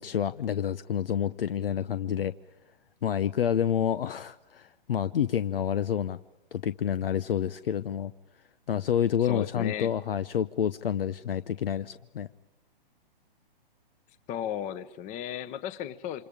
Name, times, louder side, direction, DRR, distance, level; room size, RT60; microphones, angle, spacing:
voice 1, 0.0-2.3 3.0-6.2 6.5-8.1 8.7-12.3, left 9 dB, 75° left, 14 dB, 0.8 m, -28 dB
voice 2, 9.2-9.9 14.3-16.3, left 10 dB, 25° left, 14 dB, 1.1 m, -35 dB
28.5 x 26.0 x 5.1 m, 0.97 s
hypercardioid pair, 125°, 29 cm